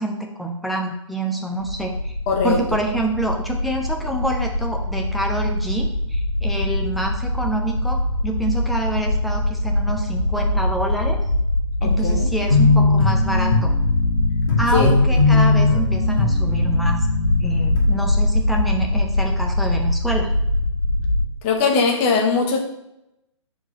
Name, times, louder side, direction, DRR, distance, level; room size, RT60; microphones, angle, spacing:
voice 1, 0.0-2.1 2.4-11.2 11.8-13.7 14.6-17.0 17.4-20.3, right 1 dB, ahead, 1 dB, 0.5 m, -27 dB
sound 1, 1.6-21.3, left 1 dB, 65° left, 2.5 m, -23 dB
voice 2, 2.3-2.6 11.8-12.3 14.7-14.9 15.3-15.4 21.4-22.6, left 4 dB, 25° left, 2 dB, 0.9 m, -20 dB
sound 2, 12.5-17.8, left 3 dB, 45° left, 1.8 m, -20 dB
4.8 x 4.4 x 5.8 m, 0.86 s
figure-of-eight pair, 125°, 16 cm